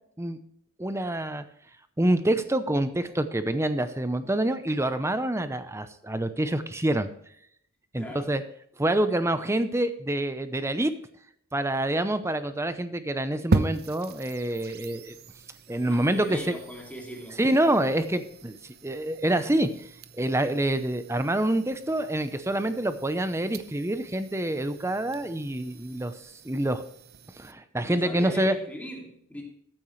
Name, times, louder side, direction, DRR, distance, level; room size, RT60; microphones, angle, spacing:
voice 1, 0.8-1.4 2.0-7.1 7.9-8.4 8.8-10.9 11.5-15.1 15.7-16.5 17.4-19.9 20.2-26.1 26.4-26.8 27.4-28.5, right 1 dB, 10° right, 11 dB, 0.7 m, -26 dB
voice 2, 8.0-8.3 15.9-17.4 27.9-29.4, equal, 5° left, -1 dB, 2.5 m, -39 dB
sound 1, 13.5-27.5, right 3 dB, 45° right, 0.7 m, -37 dB
14.5 x 9.0 x 3.2 m, 0.69 s
head